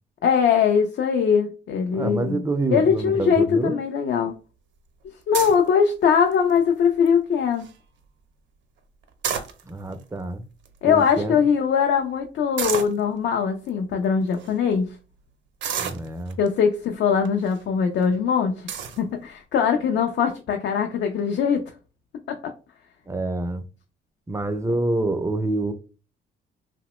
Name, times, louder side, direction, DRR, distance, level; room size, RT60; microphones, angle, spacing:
voice 1, 0.2-2.4 2.7-4.4 5.3-7.7 10.8-14.9 16.4-21.7 22.3-22.5, left 7 dB, 65° left, 0.4 m, -21 dB
voice 2, 1.9-3.8 9.6-10.4 10.8-11.4 15.8-16.4 23.1-23.6 24.3-25.7, right 2 dB, 15° right, 0.4 m, -27 dB
sound 1, 5.3-5.7 6.3-6.6 7.1-7.2 7.4-7.7 9.0-9.9 10.6-10.7 11.0-11.1 12.6-13.0 13.7-13.8 14.3-14.5 15.6-16.5 17.2-17.6 18.0-18.1 18.7-19.0, right 8 dB, 65° right, 0.6 m, -29 dB
2.9 x 2.0 x 2.9 m
cardioid pair, 90°, 20 cm